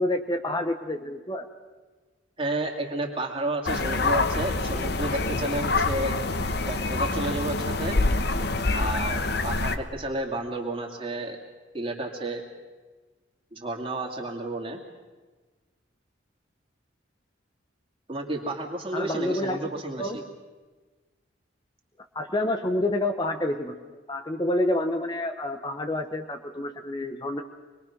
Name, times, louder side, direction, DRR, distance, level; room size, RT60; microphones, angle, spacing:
voice 1, 0.0-1.5 18.9-19.6 20.0-20.2 22.1-23.8 24.1-27.4, left 1 dB, 20° left, 6 dB, 0.8 m, -28 dB
voice 2, 2.4-6.1 6.7-8.0 8.6-11.4 11.7-12.4 13.5-14.8 18.1-20.2, right 2 dB, 30° right, 1 dB, 2.5 m, -31 dB
sound 1, 3.7-9.8, left 3 dB, 55° left, 1.0 m, -26 dB
25.0 x 21.5 x 6.0 m, 1.3 s
head